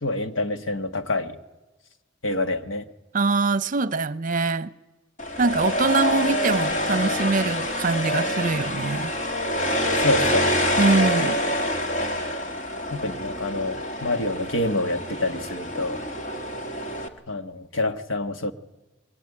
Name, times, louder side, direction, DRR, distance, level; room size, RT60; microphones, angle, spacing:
voice 1, 0.0-1.4 2.2-2.9 10.0-10.5 12.9-16.0 17.3-18.5, left 2 dB, 85° left, 1.6 m, -27 dB
voice 2, 3.1-4.7 5.4-9.1 10.8-11.4, right 3 dB, 45° right, 0.8 m, -23 dB
sound 1, 5.2-17.1, left 1 dB, 40° left, 2.1 m, -26 dB
22.0 x 21.5 x 9.9 m
head